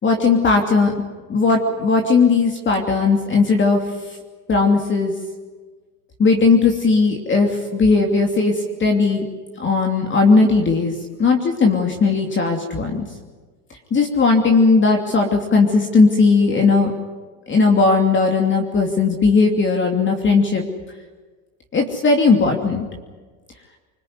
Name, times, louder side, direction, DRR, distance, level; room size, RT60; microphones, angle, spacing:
voice 1, 0.0-0.9 1.3-3.8 4.5-5.1 6.2-9.3 9.6-10.9 11.2-13.0 13.9-16.9 17.5-20.6 21.7-22.9, left 4 dB, 25° left, 3 dB, 2.9 m, -17 dB
25.0 x 20.5 x 9.6 m, 1.4 s
supercardioid pair, 125°, 45 cm